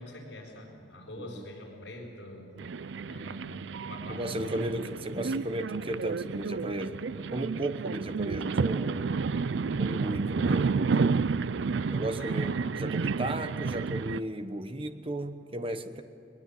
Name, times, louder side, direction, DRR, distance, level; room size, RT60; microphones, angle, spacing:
voice 1, 0.0-4.7 11.8-12.7, left 1 dB, 70° left, -3 dB, 6.4 m, -45 dB
sound 1, 2.6-14.2, right 4 dB, 70° right, 0.5 m, -31 dB
voice 2, 4.1-11.2 11.9-16.0, right 1 dB, 30° right, 8 dB, 1.2 m, -35 dB
22.5 x 20.5 x 7.8 m, 2.7 s
head